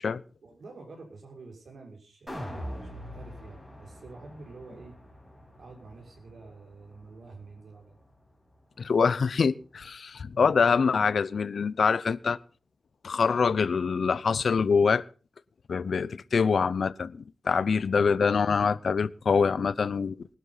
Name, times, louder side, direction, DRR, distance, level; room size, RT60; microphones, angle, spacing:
voice 1, 0.4-5.0 5.6-8.0 17.9-18.1 19.6-20.2, right 3 dB, 70° right, 6.0 m, -48 dB
sound 1, 2.3-8.5 8.9-9.0, equal, ahead, 7.1 m, -44 dB
voice 2, 8.8-12.4 13.0-15.0 15.7-20.1, left 5 dB, 65° left, 0.7 m, -25 dB
19.5 x 12.0 x 4.1 m
wide cardioid pair, 120°, 0 cm